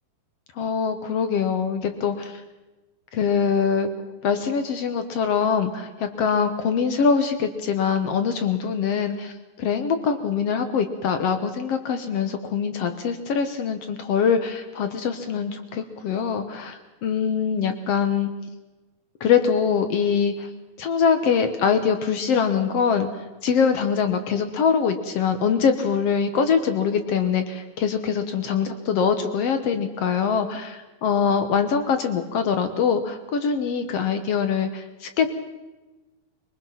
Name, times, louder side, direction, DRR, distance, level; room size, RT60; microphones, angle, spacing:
voice 1, 0.5-2.4 3.1-3.9 4.2-18.3 19.2-20.5 20.8-23.1 23.4-35.3, left 6 dB, 60° left, 8 dB, 1.7 m, -23 dB
23.0 x 20.5 x 5.8 m, 1.1 s
omnidirectional pair, 4.1 m